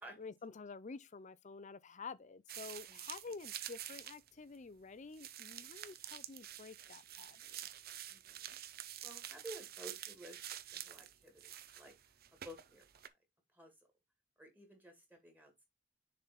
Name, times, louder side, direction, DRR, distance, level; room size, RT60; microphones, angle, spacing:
voice 1, 0.2-7.6, left 4 dB, 40° left, 0.5 m, -50 dB
sound 1, 2.5-4.3 4.5-4.6 5.1-13.1, right 11 dB, 50° right, 0.6 m, -48 dB
voice 2, 8.1-8.6 9.0-10.4 10.7-11.9 12.3-12.9 13.5-13.7 14.4-15.7, right 1 dB, 10° right, 2.0 m, -53 dB
6.8 x 3.9 x 4.1 m
head